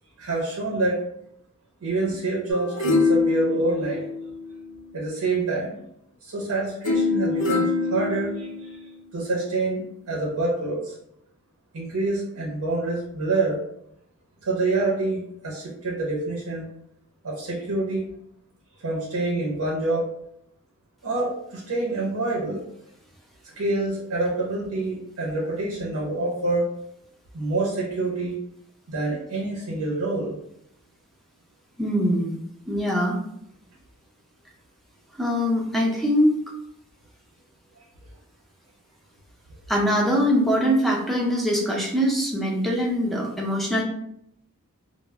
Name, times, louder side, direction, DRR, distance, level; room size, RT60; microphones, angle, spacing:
voice 1, 0.2-1.0 1.8-4.1 4.9-5.8 6.2-8.8 9.1-11.0 11.7-13.6 14.4-16.7 17.2-18.1 18.8-20.1 21.0-22.6 23.6-26.7 27.3-28.4 28.9-30.4 37.8-37.9, right 2 dB, 75° right, -4 dB, 0.6 m, -27 dB
sound 1, 2.5-4.8 6.8-8.9 9.4-9.5, left 3 dB, 70° left, 0.7 m, -24 dB
voice 2, 31.8-32.4 32.7-33.2 35.2-36.4 39.7-43.8, equal, ahead, -2 dB, 0.4 m, -22 dB
2.1 x 2.0 x 3.3 m, 0.73 s
head